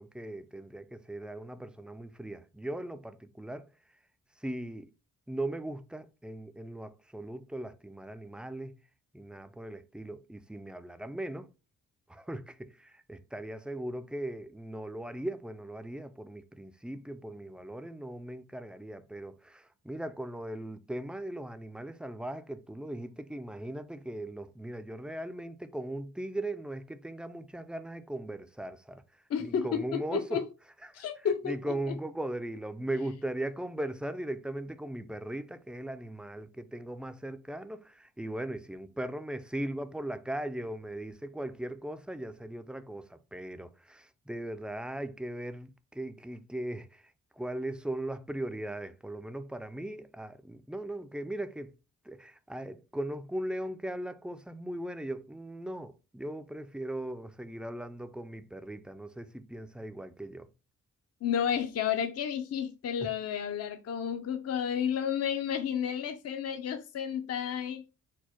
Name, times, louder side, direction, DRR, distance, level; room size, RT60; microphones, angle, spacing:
voice 1, 0.0-3.7 4.4-4.9 5.3-8.8 9.1-11.5 12.1-30.4 30.8-31.1 31.4-51.7 52.0-60.5 63.0-63.1, right 1 dB, 5° right, 0.3 m, -38 dB
voice 2, 29.3-30.4 30.9-31.6 61.2-67.8, left 8 dB, 55° left, 0.5 m, -31 dB
4.5 x 2.1 x 4.2 m
cardioid pair, 90°, 31 cm